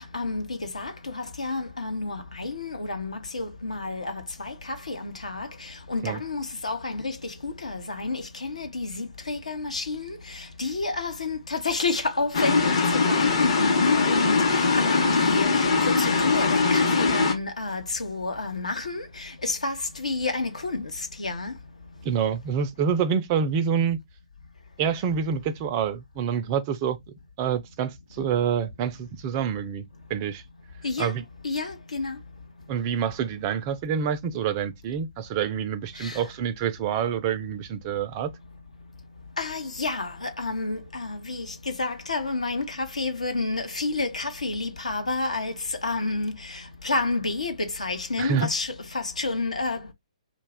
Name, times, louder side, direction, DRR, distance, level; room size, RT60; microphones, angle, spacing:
voice 1, 0.1-20.9 21.2-21.5 30.8-31.1 31.4-32.2 36.0-36.2 39.4-49.9, left 3 dB, 75° left, 0.7 m, -30 dB
sound 1, 12.3-17.3, left 4 dB, 50° left, 0.8 m, -21 dB
voice 2, 22.0-24.0 24.8-27.0 27.4-29.8 30.1-30.4 31.0-31.2 32.7-38.3 48.2-48.5, right 7 dB, 25° right, 0.3 m, -27 dB
2.4 x 2.2 x 3.4 m
figure-of-eight pair, 130°, 4 cm